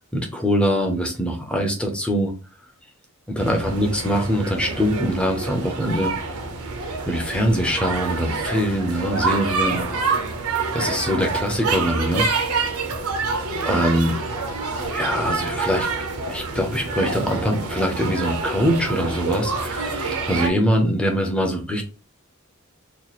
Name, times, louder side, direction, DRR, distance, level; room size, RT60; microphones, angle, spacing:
voice 1, 0.1-2.3 3.3-6.1 7.1-9.9 10.7-12.3 13.6-14.2 14.9-15.9 16.3-21.8, equal, 5° left, 2 dB, 0.5 m, -23 dB
sound 1, 3.4-20.5, right 4 dB, 80° right, 0.7 m, -27 dB
2.9 x 2.4 x 4.0 m, 0.35 s
head